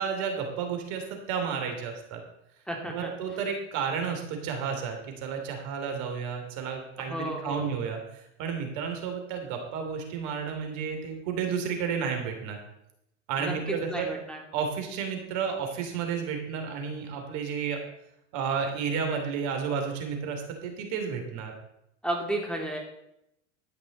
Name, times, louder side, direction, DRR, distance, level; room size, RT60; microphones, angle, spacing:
voice 1, 0.0-2.2 2.9-12.6 13.3-14.1 14.5-17.8 18.3-21.5, right 6 dB, 55° right, 4 dB, 3.3 m, -32 dB
voice 2, 2.7-3.1 7.0-7.7 13.4-14.4 22.0-22.8, right 1 dB, ahead, 0 dB, 2.6 m, -33 dB
12.5 x 9.4 x 4.3 m, 0.80 s
hypercardioid pair, 95°, 36 cm